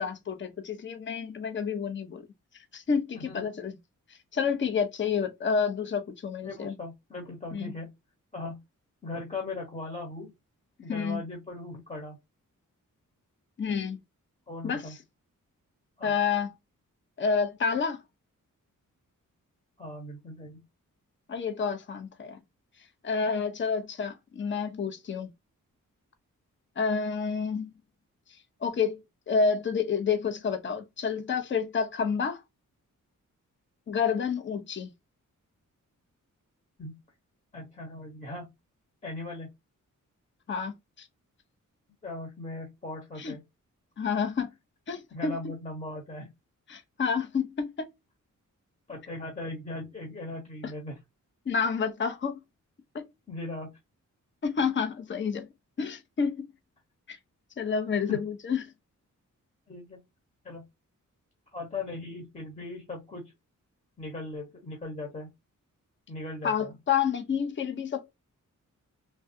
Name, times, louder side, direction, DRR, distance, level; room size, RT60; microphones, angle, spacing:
voice 1, 0.0-2.2 2.7-3.7 4.3-6.7 7.5-7.7 10.9-11.2 13.6-14.0 14.6-14.8 16.0-16.5 17.2-18.0 21.3-22.4 23.0-25.3 26.8-27.7 28.6-29.0 29.3-32.4 33.9-34.9 40.5-41.1 43.2-43.3 44.0-44.5 44.9-45.4 46.7-47.9 51.5-52.4 52.9-53.1 54.4-55.5 55.8-56.5 57.1-57.2 57.6-58.6 66.4-68.1, left 6 dB, 40° left, 0.6 m, -29 dB
voice 2, 3.1-3.5 6.4-7.9 8.3-8.6 9.0-10.3 10.8-12.2 14.5-14.9 16.0-16.2 19.8-20.6 36.8-37.0 37.5-38.5 39.0-39.5 42.0-43.4 45.1-46.3 48.9-51.0 53.3-53.7 58.1-58.2 59.7-60.0 60.4-60.7 61.5-63.3 64.0-65.3 66.1-66.7, left 2 dB, 20° left, 1.1 m, -38 dB
3.3 x 2.3 x 2.5 m
wide cardioid pair, 110°, 31 cm